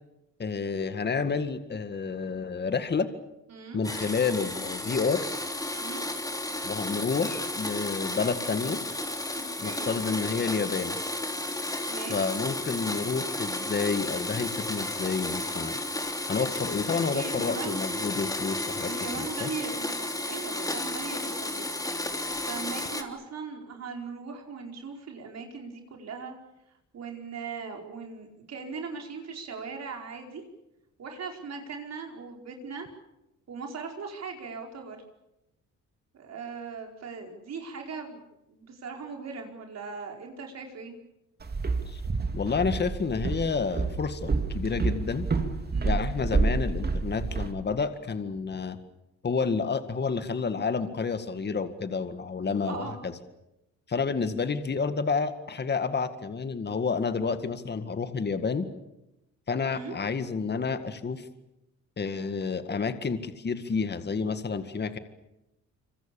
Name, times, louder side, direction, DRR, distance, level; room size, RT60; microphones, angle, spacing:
voice 1, 0.4-3.1 3.7-5.3 6.6-8.8 9.6-11.0 12.1-15.8 16.3-19.5 41.9-42.0 42.3-45.3 45.8-48.8 49.2-53.1 53.9-58.7 59.5-61.3 62.0-65.0, left 5 dB, 35° left, 10 dB, 1.9 m, -29 dB
voice 2, 3.5-3.8 5.7-6.0 9.3-9.9 11.9-12.3 17.1-17.8 18.8-22.1 22.5-26.3 26.9-30.4 31.0-32.9 33.5-35.0 36.1-38.2 38.5-40.9 45.7-46.0 52.6-53.0 59.6-60.0, right 5 dB, 60° right, 2 dB, 5.0 m, -39 dB
Domestic sounds home sounds, 3.8-23.0, left 2 dB, 10° left, 3.4 m, -33 dB
Walk footsteps, 41.4-47.5, right 4 dB, 30° right, 2.8 m, -29 dB
26.5 x 26.0 x 7.1 m, 0.92 s
cardioid pair, 90°, 30 cm